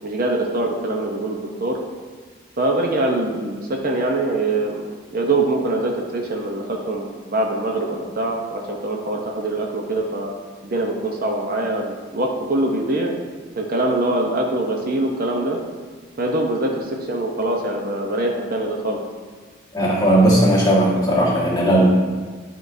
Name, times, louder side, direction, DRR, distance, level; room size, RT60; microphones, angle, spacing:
voice 1, 0.0-1.8 2.6-4.8 5.1-10.3 10.6-13.1 13.6-15.6 16.2-19.0, right 2 dB, 45° right, 1 dB, 0.7 m, -23 dB
voice 2, 19.7-21.9, right 1 dB, 20° left, -5 dB, 1.5 m, -16 dB
10.5 x 4.7 x 2.6 m, 1.4 s
head